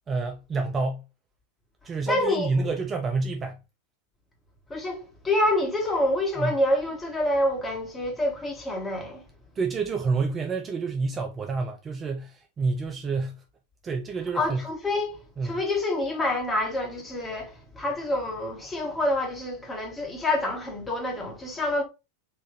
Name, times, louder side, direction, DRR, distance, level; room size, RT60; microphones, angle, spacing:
voice 1, 0.1-1.0 1.8-3.6 6.4-6.5 9.6-13.4 13.8-14.6 15.4-15.6, right 4 dB, 20° right, 0.5 m, -28 dB
voice 2, 2.1-2.5 4.7-9.2 14.3-21.8, left 1 dB, 15° left, 1.3 m, -27 dB
3.9 x 2.5 x 3.3 m
figure-of-eight pair, 90°, 0 cm